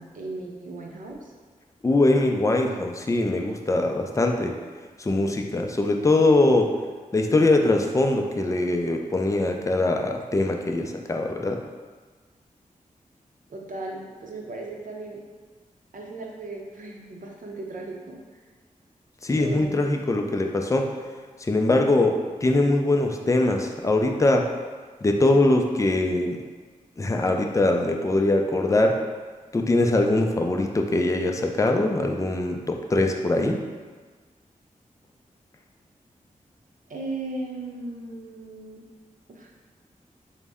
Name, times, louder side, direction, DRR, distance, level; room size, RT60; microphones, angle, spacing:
voice 1, 0.0-1.3 13.5-15.2 15.9-18.2 19.4-19.9 36.9-38.8 39.3-39.5, right 2 dB, 65° right, 0 dB, 0.6 m, -36 dB
voice 2, 1.8-4.6 5.0-6.7 7.1-11.6 19.2-20.9 21.4-24.5 25.0-26.4 27.0-29.0 29.5-33.6, left 2 dB, 20° left, 3 dB, 0.4 m, -22 dB
3.9 x 2.1 x 3.5 m, 1.4 s
cardioid pair, 45°, 14 cm